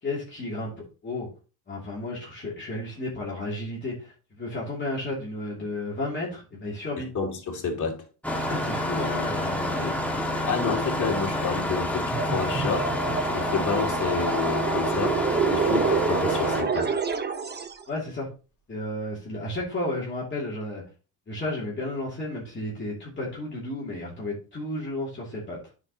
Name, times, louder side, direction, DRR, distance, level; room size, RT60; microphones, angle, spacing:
voice 1, 0.0-0.7 1.0-1.3 1.7-7.1 8.5-10.1 17.9-18.3 18.7-20.8 21.3-25.6, left 2 dB, 25° left, 2.8 m, -33 dB
voice 2, 7.0-8.0 9.8-10.0 10.5-16.9, left 5 dB, 45° left, 2.7 m, -30 dB
Engine starting, 8.2-16.6, left 1 dB, 5° left, 1.8 m, -28 dB
sound 1, 12.0-17.8, right 5 dB, 25° right, 1.0 m, -28 dB
9.6 x 6.4 x 2.9 m
cardioid pair, 115°, 44 cm